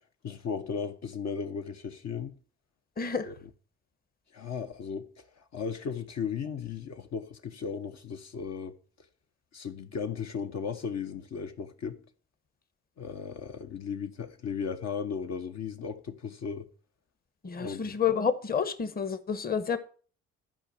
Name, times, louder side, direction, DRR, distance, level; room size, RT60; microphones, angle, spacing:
voice 1, 0.2-2.3 3.3-3.4 4.3-8.8 9.5-12.0 13.0-16.7 17.6-17.9, left 6 dB, 60° left, 1.1 m, -36 dB
voice 2, 3.0-3.3 17.4-19.8, left 7 dB, 30° left, 1.1 m, -29 dB
11.5 x 5.2 x 7.1 m
cardioid pair, 90°, 30 cm